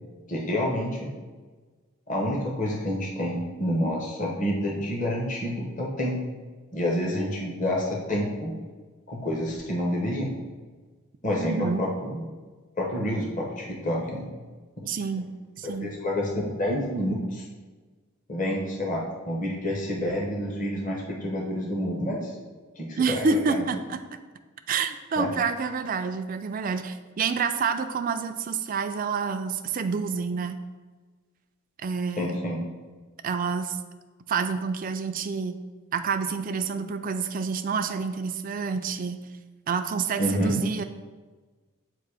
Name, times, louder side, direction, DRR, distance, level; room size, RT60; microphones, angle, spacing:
voice 1, 0.3-1.1 2.1-6.2 6.7-8.6 9.1-10.3 11.2-12.2 12.8-14.3 14.8-14.9 15.6-17.4 18.3-22.3 22.8-23.6 25.2-25.3 32.2-32.6 40.2-40.5, equal, 35° left, -2 dB, 0.8 m, -28 dB
voice 2, 11.4-11.9 14.9-15.3 15.6-15.9 23.0-24.0 24.7-30.6 31.8-32.4 33.2-33.8 34.3-35.6 35.9-39.2 39.7-40.8, right 5 dB, 40° right, 8 dB, 0.3 m, -28 dB
7.6 x 2.6 x 4.9 m, 1.3 s
head